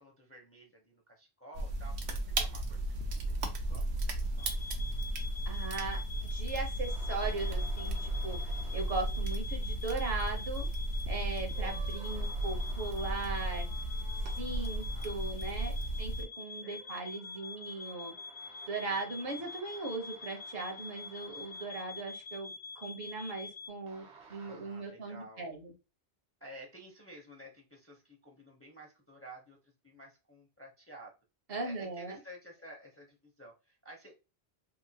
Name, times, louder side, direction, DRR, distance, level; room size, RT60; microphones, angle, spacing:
voice 1, 0.0-3.2 3.7-4.6 11.8-12.2 14.9-15.3 16.6-16.9 18.8-19.0 19.2-19.5 24.4-25.5 26.4-31.1 31.6-34.1, right 1 dB, 20° left, 1 dB, 0.5 m, -53 dB
sound 1, 1.5-16.2, right 1 dB, 90° right, 0.9 m, -35 dB
sound 2, 4.4-23.7, left 4 dB, 70° left, 0.8 m, -46 dB
voice 2, 5.5-10.7 11.1-13.7 14.4-15.7 16.0-18.1 18.7-25.7 31.5-32.2, right 3 dB, 65° right, 3 dB, 1.1 m, -39 dB
sound 3, 6.9-9.3 10.2-10.3 11.5-16.1 16.5-22.3 23.9-24.9, right 5 dB, 50° right, 0.7 m, -56 dB
2.9 x 2.5 x 2.7 m, 0.29 s
omnidirectional pair, 1.1 m